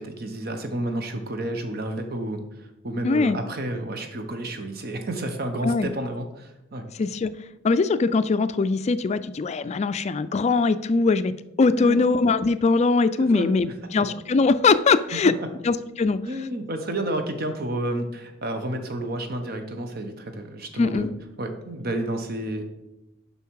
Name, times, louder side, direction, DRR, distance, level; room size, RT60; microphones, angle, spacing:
voice 1, 0.0-6.8 11.8-12.0 13.2-13.5 15.2-15.3 16.2-21.1 21.4-22.6, right 1 dB, 55° right, 6 dB, 1.0 m, -30 dB
voice 2, 3.0-3.4 5.6-5.9 7.0-7.3 7.6-11.3 11.6-15.3 15.6-16.2 20.8-21.1, left 4 dB, 35° left, 14 dB, 0.3 m, -21 dB
6.9 x 5.7 x 4.7 m, 0.93 s
head